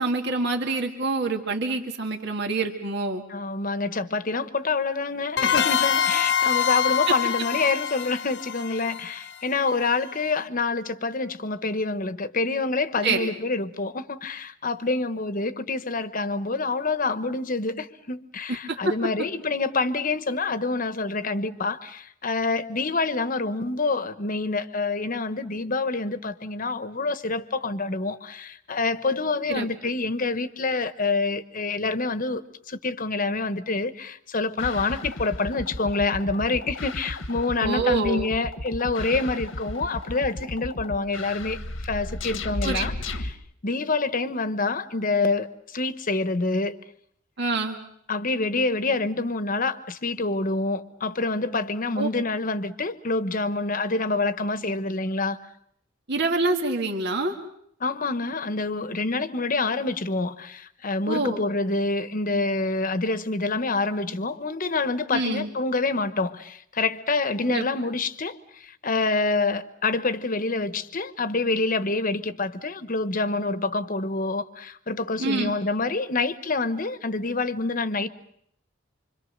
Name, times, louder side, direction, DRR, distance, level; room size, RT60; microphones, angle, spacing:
voice 1, 0.0-3.2 13.0-13.3 18.7-18.9 29.5-29.7 37.6-38.3 42.6-42.9 47.4-47.8 52.0-52.1 56.1-57.3 61.1-61.4 65.1-65.5 67.5-67.7 75.2-75.5, right 3 dB, 60° right, 1.9 m, -26 dB
voice 2, 3.3-43.4 43.6-46.8 48.1-55.4 57.8-78.1, left 3 dB, 45° left, 1.1 m, -27 dB
sound 1, 5.4-9.9, left 8 dB, 65° left, 1.2 m, -25 dB
sound 2, 34.6-43.3, left 2 dB, 85° left, 1.5 m, -34 dB
26.0 x 25.5 x 6.6 m
head